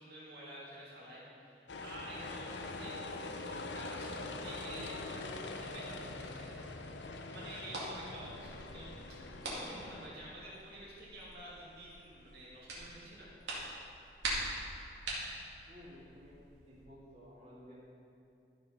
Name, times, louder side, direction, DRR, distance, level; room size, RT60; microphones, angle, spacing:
voice 1, 0.0-5.2 5.6-9.0 9.4-13.3, right 1 dB, 65° right, -8 dB, 2.6 m, -50 dB
sound 1, 1.7-10.1, left 2 dB, 90° left, 0.7 m, -43 dB
sound 2, 7.6-16.9, right 1 dB, 90° right, 2.3 m, -45 dB
voice 2, 15.7-16.4 16.6-17.7, equal, 35° right, -9 dB, 2.3 m, -54 dB
13.0 x 5.1 x 5.5 m, 2.6 s
head